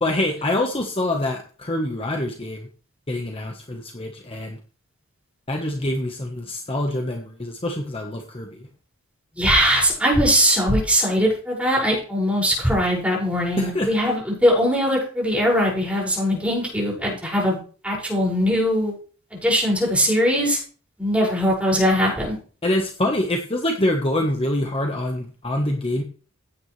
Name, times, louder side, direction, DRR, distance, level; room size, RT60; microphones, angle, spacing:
voice 1, 0.0-2.7 3.1-4.6 5.5-8.7 13.6-13.9 22.6-26.0, left 1 dB, 25° left, 3 dB, 1.3 m, -25 dB
voice 2, 9.4-17.6 17.8-19.0 19.3-20.6 21.0-22.4, equal, 5° right, -4 dB, 6.0 m, -20 dB
16.0 x 9.5 x 3.3 m, 0.40 s
head